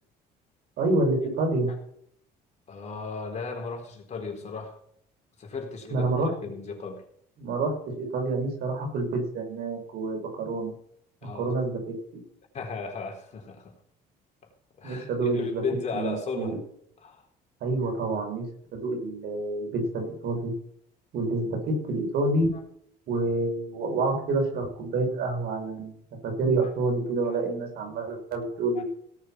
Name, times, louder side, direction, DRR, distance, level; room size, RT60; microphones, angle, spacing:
voice 1, 0.8-1.7 5.9-6.3 7.4-10.7 11.4-11.8 14.8-15.6 15.9-16.6 17.6-18.5 18.7-20.5 21.1-22.5 23.1-28.8, right 2 dB, 70° right, 2 dB, 6.1 m, -28 dB
voice 2, 2.7-4.8 5.4-6.1 6.4-7.0 11.2-11.5 12.5-13.7 14.4-14.5 14.8-16.6 17.0-17.2 26.6-26.7 27.2-27.4 28.7-28.8, left 4 dB, 40° left, 1 dB, 4.2 m, -35 dB
18.0 x 6.8 x 6.1 m, 0.63 s
cardioid pair, 110°, 17 cm